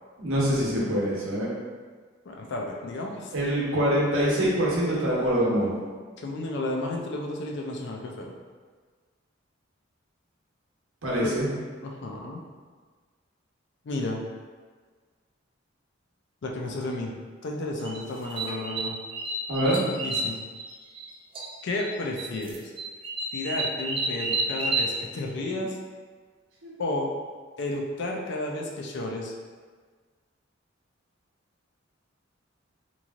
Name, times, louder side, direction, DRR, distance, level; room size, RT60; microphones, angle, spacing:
voice 1, 0.2-1.5 3.3-5.7 11.0-11.5 19.5-19.8 26.6-26.7, equal, 85° right, -6 dB, 0.9 m, -24 dB
voice 2, 2.3-3.5 6.2-8.3 11.2-11.3 11.8-12.4 13.8-14.2 16.4-17.1 17.4-19.0 19.7-20.4 21.6-22.6 23.3-25.8 26.8-27.1 27.6-29.3, left 2 dB, 60° left, 0 dB, 0.4 m, -32 dB
sound 1, 17.8-21.1 21.3-21.9 22.2-24.9, right 2 dB, 25° right, 0.3 m, -30 dB
3.0 x 2.6 x 2.4 m, 1.5 s
head